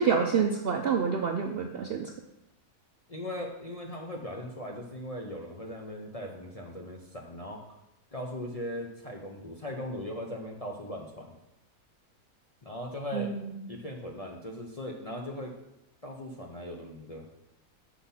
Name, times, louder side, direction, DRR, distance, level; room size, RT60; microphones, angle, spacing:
voice 1, 0.0-2.1 13.1-13.5, right 6 dB, 60° right, 4 dB, 0.6 m, -27 dB
voice 2, 3.1-7.6 8.1-11.4 12.6-13.3 13.7-15.5 16.0-17.2, left 1 dB, 35° left, 0 dB, 0.7 m, -39 dB
6.1 x 5.8 x 5.6 m, 0.90 s
omnidirectional pair, 1.6 m